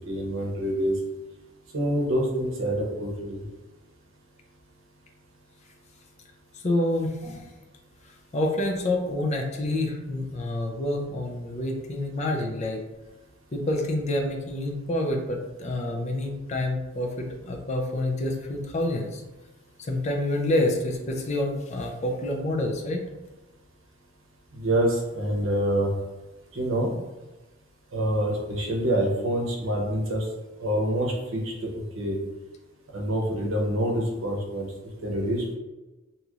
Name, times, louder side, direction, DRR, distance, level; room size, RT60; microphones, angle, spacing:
voice 1, 0.1-0.9 1.7-3.4 24.5-25.9 26.5-27.0 27.9-30.2 30.6-32.2 32.9-34.7 35.0-35.5, right 1 dB, 75° right, -1 dB, 0.7 m, -26 dB
voice 2, 6.6-7.5 8.3-12.8 13.5-19.2 19.8-23.0, left 1 dB, 35° left, 1 dB, 0.4 m, -28 dB
3.0 x 2.7 x 2.4 m, 1.1 s
head